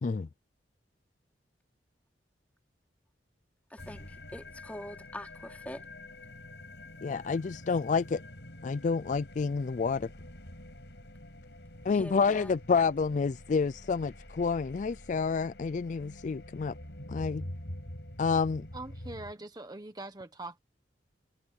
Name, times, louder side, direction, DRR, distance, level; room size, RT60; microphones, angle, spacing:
voice 1, 3.7-5.9 11.9-12.5, left 1 dB, 10° left, 3.7 m, -44 dB
sound 1, 3.8-19.3, left 1 dB, 75° left, 6.1 m, -46 dB
voice 2, 7.0-8.2 8.6-10.1 11.8-16.7 17.1-17.5 18.2-18.7, left 5 dB, 45° left, 0.4 m, -29 dB
voice 3, 18.7-20.6, right 2 dB, 20° right, 1.3 m, -42 dB
head